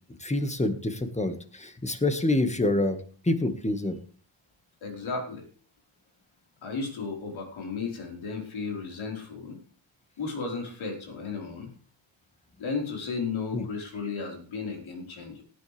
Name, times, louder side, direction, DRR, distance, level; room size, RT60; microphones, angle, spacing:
voice 1, 0.2-3.0 3.2-4.0 13.5-13.6, left 2 dB, 15° left, 8 dB, 1.7 m, -26 dB
voice 2, 4.8-5.4 6.6-9.6 10.2-11.7 12.6-15.4, left 4 dB, 75° left, 1 dB, 4.7 m, -34 dB
18.0 x 10.0 x 3.4 m, 0.41 s
cardioid pair, 110°, 47 cm